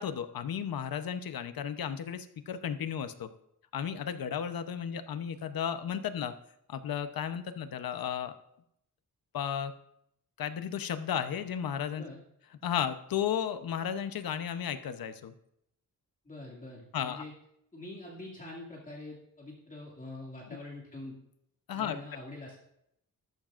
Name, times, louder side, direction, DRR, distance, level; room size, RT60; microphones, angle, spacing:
voice 1, 0.0-3.3 3.7-6.3 6.7-8.3 9.3-9.7 10.4-12.0 12.6-15.3 16.9-17.2 21.7-22.0, left 8 dB, 75° left, 10 dB, 0.9 m, -34 dB
voice 2, 16.2-17.3 17.7-21.2 21.7-22.6, left 2 dB, 25° left, -4 dB, 2.3 m, -45 dB
14.0 x 13.0 x 2.5 m, 0.75 s
wide cardioid pair, 160°, 35 cm